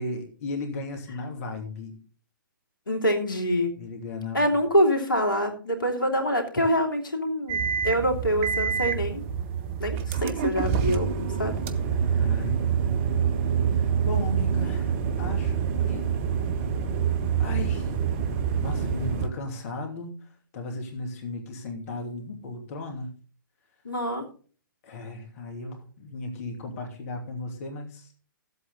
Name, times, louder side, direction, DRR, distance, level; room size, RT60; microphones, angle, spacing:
voice 1, 0.0-2.0 3.8-4.6 12.2-12.6 13.7-16.1 17.4-17.9 18.6-23.1 24.8-28.1, left 2 dB, 45° left, 3 dB, 2.7 m, -36 dB
voice 2, 2.9-3.7 4.3-9.2 9.8-11.5 23.8-24.2, equal, 75° left, 3 dB, 2.8 m, -25 dB
sound 1, 7.5-19.3, right 7 dB, 35° right, 1.0 m, -26 dB
14.0 x 8.1 x 3.9 m, 0.41 s
figure-of-eight pair, 125°, 11 cm